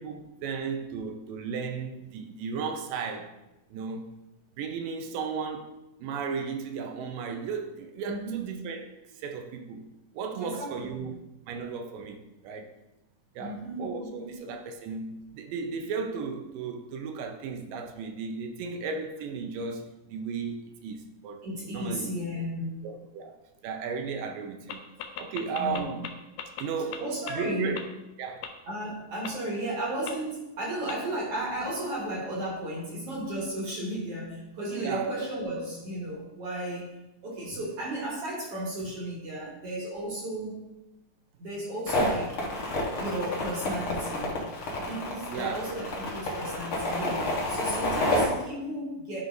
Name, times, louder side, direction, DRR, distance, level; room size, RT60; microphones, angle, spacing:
voice 1, 0.0-3.3 3.7-4.1 4.6-9.9 10.1-11.1 11.5-12.7 13.4-21.5 21.7-22.2 22.8-24.9 25.2-26.1 26.6-27.9 28.2-28.5 34.8-35.1 45.3-45.7, right 5 dB, 80° right, 2.3 m, -35 dB
voice 2, 8.1-8.4 10.4-10.7 13.4-14.4 21.4-22.8 25.5-25.9 27.0-27.8 28.7-36.9 37.2-40.6 41.4-42.4 43.0-44.5 44.7-49.2, right 1 dB, 50° right, 2.1 m, -34 dB
sound 1, 24.7-24.8 25.0-26.1 26.4-26.6 26.9-27.0 27.3-27.4 27.8-27.9 28.4-28.5 29.2-29.3 30.1-30.2 30.9-31.0, left 10 dB, 75° left, 2.2 m, -35 dB
sound 2, 41.9-48.2, left 1 dB, 55° left, 1.7 m, -29 dB
11.5 x 5.4 x 2.7 m
omnidirectional pair, 4.1 m